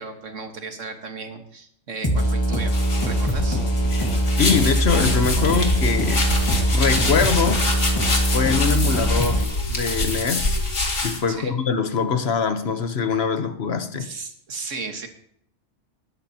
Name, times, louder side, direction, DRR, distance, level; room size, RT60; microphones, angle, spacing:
voice 1, 0.0-3.6 11.3-11.6 14.0-15.1, right 4 dB, 85° right, 1.9 m, -35 dB
sound 1, 2.0-9.4, equal, 20° left, 1.7 m, -22 dB
sound 2, 2.7-11.2, left 2 dB, 75° left, 2.6 m, -26 dB
voice 2, 4.4-6.3 6.7-7.7 8.3-10.6 11.0-14.1, left 6 dB, 60° left, 1.2 m, -23 dB
20.0 x 12.5 x 2.9 m
omnidirectional pair, 1.3 m